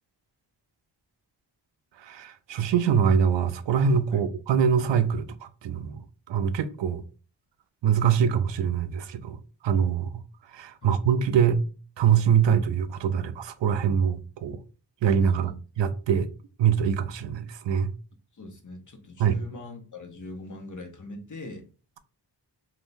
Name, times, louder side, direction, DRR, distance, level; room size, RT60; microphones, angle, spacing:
voice 1, 2.0-5.3 5.6-6.0 6.3-7.0 7.8-9.4 9.6-10.1 10.5-11.6 12.0-14.6 15.0-15.5 15.8-16.3 16.6-17.9 19.2-19.4, right 7 dB, 75° right, 0.5 m, -23 dB
voice 2, 18.3-21.7, left 2 dB, 45° left, 0.9 m, -41 dB
3.5 x 2.7 x 2.6 m
wide cardioid pair, 105°, 44 cm